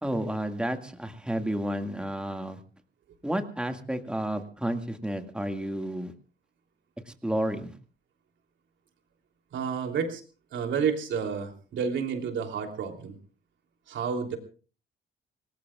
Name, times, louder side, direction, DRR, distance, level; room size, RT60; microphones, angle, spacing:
voice 1, 0.0-2.6 3.2-6.1 7.1-7.8, right 1 dB, 5° right, 6 dB, 2.0 m, -31 dB
voice 2, 9.5-10.2 10.5-13.1 13.9-14.4, right 6 dB, 70° right, 4 dB, 3.2 m, -30 dB
26.0 x 18.5 x 2.4 m, 0.36 s
cardioid pair, 90°, 20 cm